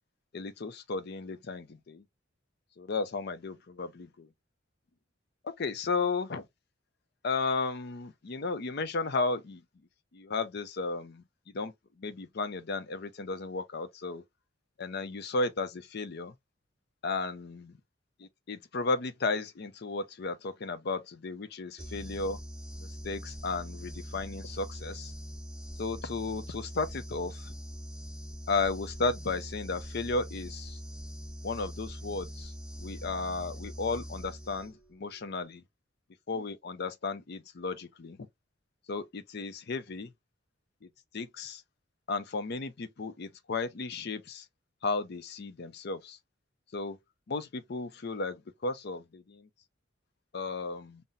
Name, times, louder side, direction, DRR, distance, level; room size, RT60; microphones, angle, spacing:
voice 1, 0.3-2.0 2.8-4.3 5.4-6.5 7.2-9.6 10.1-14.2 14.8-16.3 17.0-17.7 18.2-22.4 22.8-25.1 25.8-27.6 28.5-30.8 31.4-32.5 32.8-35.6 36.3-38.2 38.9-40.1 40.8-41.6 42.1-44.5 44.8-46.2 46.7-47.0 47.3-49.5 50.3-51.0, left 3 dB, 50° left, 0.5 m, -34 dB
sound 1, 21.8-34.9, equal, 5° right, 0.6 m, -42 dB
5.5 x 2.0 x 2.5 m
head